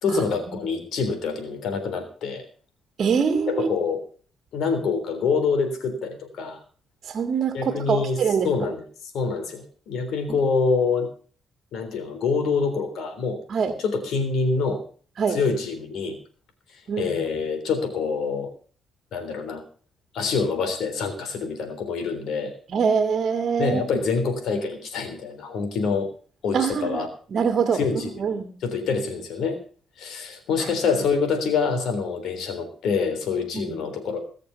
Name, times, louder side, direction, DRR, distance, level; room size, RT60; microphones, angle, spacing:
voice 1, 0.0-2.4 3.5-4.0 4.5-6.6 7.5-8.2 8.4-8.8 9.1-11.1 11.7-13.4 13.8-14.8 15.3-16.2 17.0-18.5 19.1-19.6 20.1-22.5 23.6-26.1 26.4-27.1 27.7-28.2 28.6-29.6 30.0-34.2, left 5 dB, 75° left, 7 dB, 3.6 m, -26 dB
voice 2, 3.0-3.7 7.0-8.5 10.3-10.4 13.5-13.7 15.2-15.4 16.9-17.2 22.7-23.9 26.5-27.0 27.3-27.8 28.2-28.5 30.6-30.7 33.5-33.8, right 6 dB, 55° right, 7 dB, 1.7 m, -24 dB
19.0 x 6.7 x 7.0 m, 0.42 s
cardioid pair, 90°, 0 cm